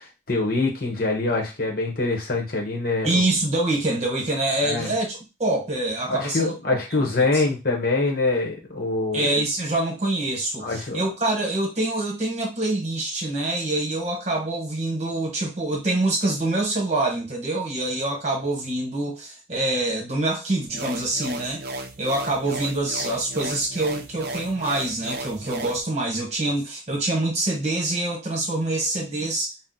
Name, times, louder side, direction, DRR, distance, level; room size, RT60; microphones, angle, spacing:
voice 1, 0.0-3.2 4.6-4.9 6.1-9.3 10.6-11.0, left 3 dB, 50° left, 0 dB, 0.9 m, -24 dB
voice 2, 3.0-7.0 7.3-7.4 9.1-21.6 22.0-29.5, right 2 dB, 35° right, -1 dB, 1.1 m, -25 dB
sound 1, 20.7-25.8, right 2 dB, 55° right, 0.5 m, -35 dB
2.8 x 2.1 x 3.8 m, 0.26 s
head